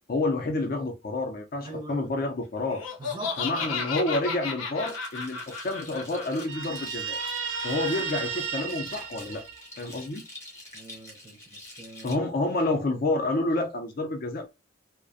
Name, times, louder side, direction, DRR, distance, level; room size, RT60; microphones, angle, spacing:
voice 1, 0.1-2.8 3.4-7.2 7.6-9.4 9.8-10.2 12.0-14.5, left 2 dB, 45° left, 0.5 m, -29 dB
voice 2, 1.6-2.1 3.0-3.7 10.7-12.2, right 2 dB, 25° right, 0.5 m, -43 dB
Laughter, 2.7-8.3, left 5 dB, 90° left, 0.7 m, -35 dB
sound 1, 4.8-12.2, left 1 dB, 15° left, 0.8 m, -46 dB
Guitar, 6.5-10.1, right 6 dB, 85° right, 0.6 m, -34 dB
2.4 x 2.1 x 2.5 m
head